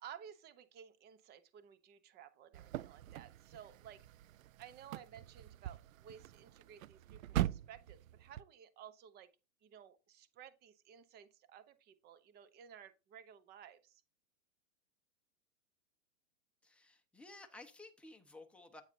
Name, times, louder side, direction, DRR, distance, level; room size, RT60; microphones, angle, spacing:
voice 1, 0.0-4.0 4.6-9.3 9.6-14.0, right 9 dB, 25° right, 0.9 m, -56 dB
sound 1, 2.5-8.4, right 13 dB, 75° right, 0.5 m, -42 dB
voice 2, 16.6-18.8, left 2 dB, 5° left, 1.1 m, -55 dB
9.0 x 9.0 x 2.8 m
hypercardioid pair, 130°, 41 cm